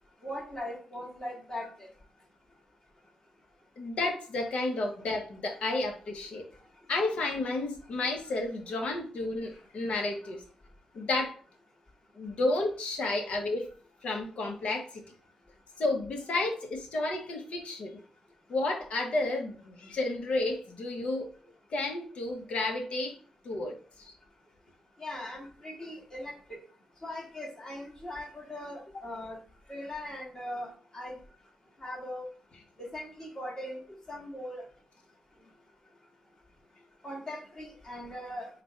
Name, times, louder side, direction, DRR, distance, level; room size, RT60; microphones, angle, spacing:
voice 1, 0.2-1.7 25.0-26.6 27.0-29.4 29.7-31.1 31.8-32.3 32.8-33.8 34.1-34.7 37.0-38.5, left 1 dB, 35° left, -2 dB, 2.0 m, -40 dB
voice 2, 3.8-6.4 6.9-10.4 10.9-11.4 12.1-13.7 14.0-15.0 15.8-18.0 18.5-21.3 21.7-23.1 23.4-24.1, left 2 dB, 70° left, 2 dB, 1.2 m, -31 dB
3.9 x 2.6 x 4.4 m, 0.41 s
cardioid pair, 65°, 2 cm